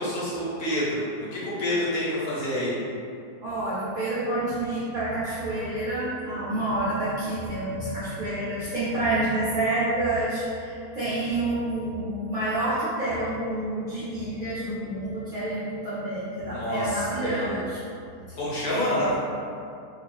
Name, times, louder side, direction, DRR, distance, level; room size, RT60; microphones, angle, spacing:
voice 1, 0.0-2.7 16.4-17.5 18.4-19.2, left 1 dB, 65° left, -9 dB, 1.3 m, -28 dB
voice 2, 3.4-17.8 18.3-18.4 18.7-19.1, right 1 dB, 60° right, -11 dB, 0.5 m, -28 dB
2.8 x 2.4 x 3.2 m, 2.4 s
omnidirectional pair, 1.8 m